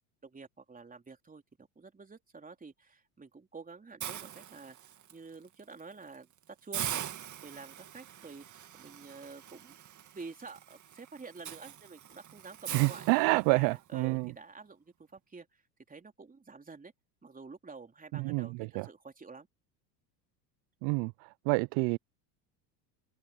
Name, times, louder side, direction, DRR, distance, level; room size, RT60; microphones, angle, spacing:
voice 1, 0.2-7.0 7.4-8.5 8.7-9.7 10.1-15.6 15.9-16.9 17.2-19.5, right 4 dB, 15° right, 3.7 m, -49 dB
Hiss, 4.0-5.1 5.6-5.8 6.1-6.2 6.7-13.8, right 10 dB, 35° right, 2.2 m, -42 dB
voice 2, 12.7-14.3 18.1-18.9 20.8-22.0, right 31 dB, 60° right, 0.5 m, -28 dB
open air
supercardioid pair, 95°, 50 cm